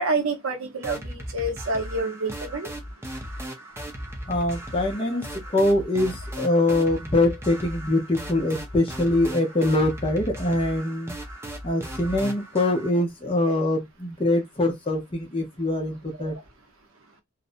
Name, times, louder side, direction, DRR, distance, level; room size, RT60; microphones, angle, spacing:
voice 1, 0.0-2.7 16.2-16.3, right 2 dB, 70° right, 0.7 m, -28 dB
sound 1, 0.8-12.9, equal, 10° right, 0.5 m, -37 dB
voice 2, 4.3-11.1 11.6-16.3, left 1 dB, 25° left, 0.7 m, -23 dB
2.5 x 2.1 x 2.5 m
head